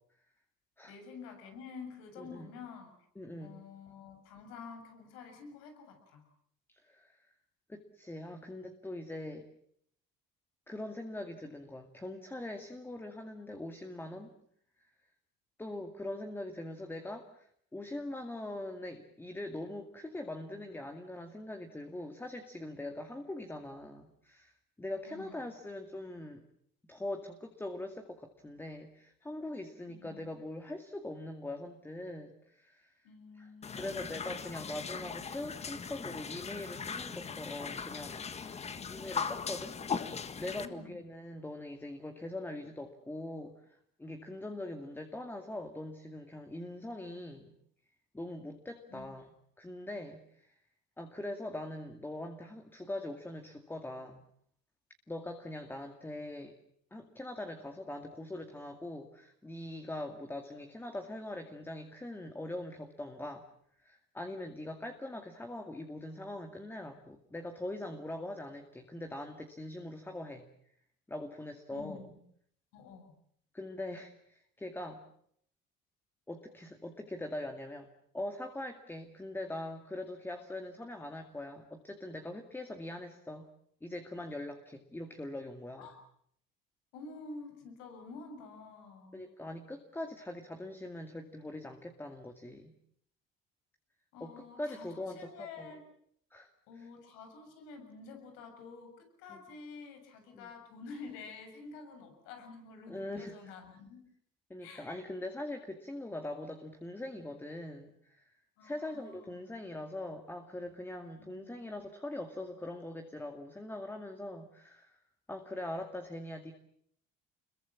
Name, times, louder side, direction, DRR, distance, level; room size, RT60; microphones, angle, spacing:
voice 1, 0.8-6.2 25.0-25.5 29.9-30.2 33.0-34.0 38.6-39.1 40.6-41.0 48.9-49.1 71.7-72.2 72.7-73.2 85.8-86.0 86.9-89.3 94.1-95.8 96.7-104.0 104.6-104.9 108.6-109.4 111.1-111.7, left 4 dB, 90° left, 6 dB, 6.9 m, -49 dB
voice 2, 2.2-2.5 3.2-3.6 6.7-7.3 7.7-9.5 10.7-14.3 15.6-24.5 24.8-26.4 26.9-32.9 33.4-33.5 33.8-43.5 44.0-47.5 48.1-49.3 49.6-50.6 51.0-54.2 55.1-56.5 56.9-63.5 63.8-70.5 71.1-72.1 73.5-75.0 76.3-77.9 78.1-83.5 83.8-85.9 89.1-92.7 94.2-95.3 95.6-95.7 96.3-96.5 96.8-96.9 99.3-99.4 100.3-100.5 102.9-103.5 104.5-108.3 108.6-115.0 115.3-116.5, left 1 dB, 10° left, 5 dB, 2.2 m, -42 dB
sound 1, 33.6-40.7, left 6 dB, 30° left, 1.6 m, -39 dB
26.5 x 22.0 x 7.4 m, 0.67 s
cardioid pair, 110°, 21 cm